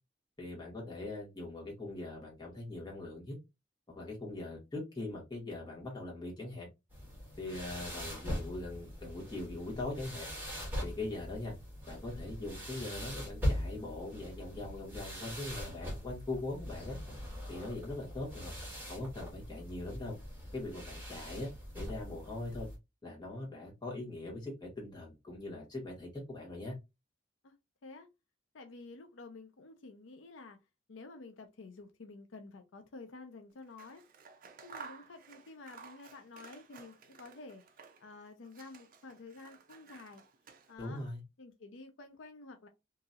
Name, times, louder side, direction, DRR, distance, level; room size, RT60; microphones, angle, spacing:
voice 1, 0.4-3.4 3.9-6.7 7.4-10.3 10.8-11.5 11.9-17.0 17.5-18.5 18.9-20.1 20.5-22.7 23.0-26.7 40.8-41.2, left 2 dB, 25° left, 1.4 m, -41 dB
sound 1, 6.9-22.8, equal, 10° right, 1.3 m, -41 dB
voice 2, 28.5-30.6 30.9-34.0 34.6-37.6 38.0-40.2 40.7-41.0 41.4-42.7, left 3 dB, 85° left, 0.5 m, -50 dB
Scissors, 33.6-38.1 38.4-41.0, right 5 dB, 45° right, 0.5 m, -54 dB
2.9 x 2.7 x 2.4 m
head